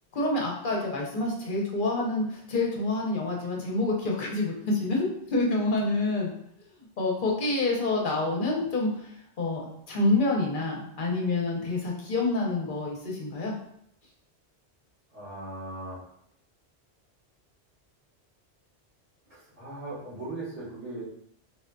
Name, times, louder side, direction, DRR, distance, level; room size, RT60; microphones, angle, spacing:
voice 1, 0.1-6.3 7.0-9.6 9.9-13.5, left 2 dB, 55° left, -2 dB, 0.8 m, -27 dB
voice 2, 15.1-16.0 19.3-21.0, right 2 dB, 80° right, -9 dB, 1.8 m, -38 dB
3.6 x 2.6 x 2.2 m, 0.71 s
omnidirectional pair, 1.1 m